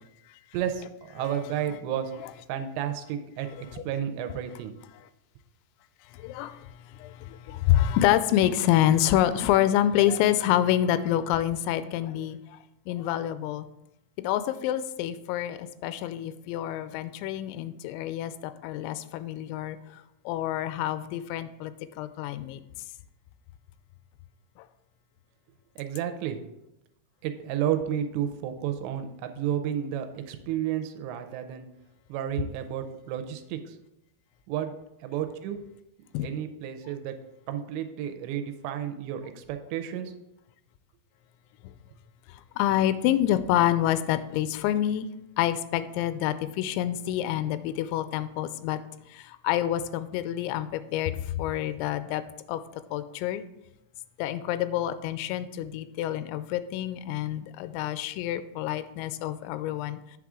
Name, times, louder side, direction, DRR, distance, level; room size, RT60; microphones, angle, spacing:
voice 1, 0.5-2.1 2.5-3.5 3.9-4.7 25.8-26.4 27.2-31.7 32.1-33.8 34.5-34.7 35.0-35.6 36.2-37.1 37.5-40.1, right 10 dB, 85° right, 7 dB, 2.8 m, -31 dB
voice 2, 6.1-12.6 12.9-13.7 14.2-22.6 24.6-24.7 36.1-36.3 42.3-45.1 45.4-48.8 49.1-52.2 52.5-52.6 52.9-53.4 54.2-60.0, left 12 dB, 90° left, 12 dB, 2.9 m, -27 dB
8.4 x 6.1 x 3.6 m, 0.87 s
omnidirectional pair, 5.1 m